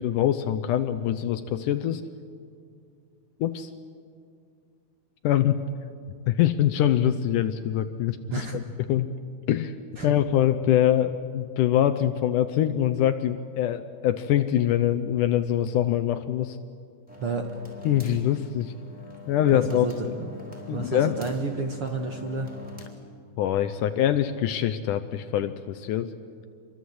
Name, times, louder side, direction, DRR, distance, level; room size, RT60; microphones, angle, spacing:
voice 1, 0.0-2.0 3.4-3.7 5.2-5.6 6.3-8.2 8.5-8.6 8.9-9.1 9.5-9.8 10.0-16.6 17.9-18.7 19.3-20.1 20.7-21.1 23.4-26.1, left 11 dB, 75° left, 9 dB, 2.0 m, -24 dB
sound 1, 17.1-22.9, left 3 dB, ahead, 3.8 m, -43 dB
voice 2, 19.5-20.3 20.7-22.5, right 4 dB, 55° right, 3 dB, 1.6 m, -31 dB
27.0 x 23.0 x 8.0 m, 2.2 s
omnidirectional pair, 4.2 m